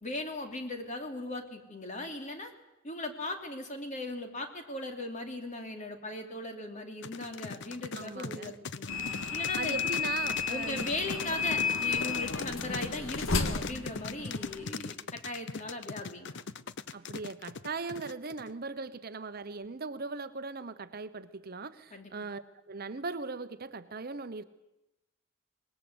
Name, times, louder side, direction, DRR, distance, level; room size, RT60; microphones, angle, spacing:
voice 1, 0.0-2.5 2.8-8.9 9.3-9.8 10.5-16.4 21.9-22.1, left 2 dB, 35° left, 5 dB, 3.0 m, -38 dB
sound 1, 7.0-18.5, left 5 dB, 60° left, 0.8 m, -39 dB
voice 2, 7.9-8.5 9.6-10.9 16.9-24.4, right 4 dB, 45° right, 12 dB, 1.0 m, -39 dB
sound 2, 8.9-14.7, left 5 dB, 75° left, 1.9 m, -33 dB
24.5 x 20.5 x 8.1 m, 0.93 s
head